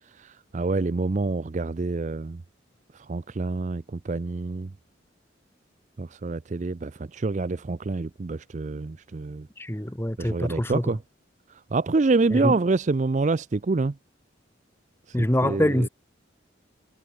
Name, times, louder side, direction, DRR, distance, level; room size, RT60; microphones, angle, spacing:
voice 1, 0.0-2.4 2.9-4.7 6.0-9.5 10.2-11.0 11.5-14.0 15.1-15.9, right 3 dB, 40° right, 0.4 m, -27 dB
voice 2, 9.6-10.9 12.3-12.6 15.1-15.9, equal, 10° left, 1.4 m, -25 dB
head